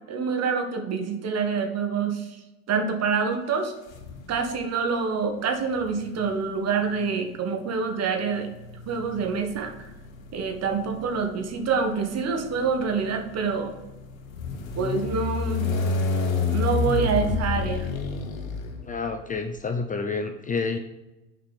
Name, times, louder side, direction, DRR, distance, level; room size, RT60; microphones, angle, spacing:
voice 1, 0.1-2.3 2.7-3.7 4.3-8.5 8.9-9.9 10.3-13.7 14.8-15.7 16.5-17.9, right 5 dB, 40° right, 5 dB, 1.6 m, -26 dB
sound 1, 3.9-4.6 5.6-19.3, left 4 dB, 75° left, 1.3 m, -31 dB
voice 2, 18.8-20.8, left 4 dB, 20° left, 6 dB, 0.6 m, -29 dB
6.6 x 4.8 x 5.9 m, 1.0 s
hypercardioid pair, 80°, 41 cm